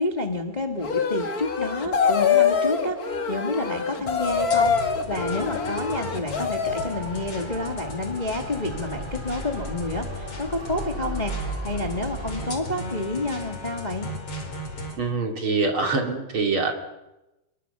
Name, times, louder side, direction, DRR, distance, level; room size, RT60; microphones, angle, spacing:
voice 1, 0.0-14.1, left 2 dB, 20° left, 4 dB, 1.0 m, -29 dB
sound 1, 0.8-7.0, left 6 dB, 50° left, 1.0 m, -24 dB
sound 2, 4.0-15.0, left 2 dB, 35° left, 4.7 m, -37 dB
Motor vehicle (road) / Siren, 6.7-12.5, right 1 dB, 5° left, 7.1 m, -35 dB
voice 2, 15.0-16.7, right 4 dB, 35° right, 3 dB, 3.5 m, -24 dB
29.0 x 23.0 x 6.9 m, 0.96 s
omnidirectional pair, 4.6 m